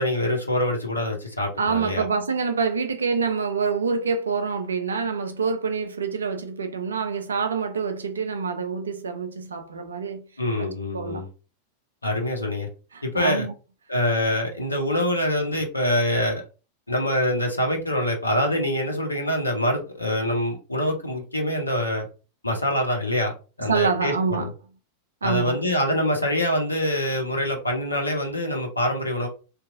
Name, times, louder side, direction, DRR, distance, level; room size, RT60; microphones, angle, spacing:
voice 1, 0.0-2.0 10.4-11.3 12.0-12.7 13.0-13.5 13.9-16.4 16.9-22.1 22.4-23.3 23.6-24.5 25.2-29.3, left 1 dB, 80° left, 0.5 m, -25 dB
voice 2, 1.6-10.2 10.6-10.7 10.9-11.2 12.9-13.5 23.6-24.5 25.2-25.6, right 5 dB, 70° right, 0.4 m, -26 dB
2.8 x 2.3 x 2.5 m
figure-of-eight pair, 90°, 0 cm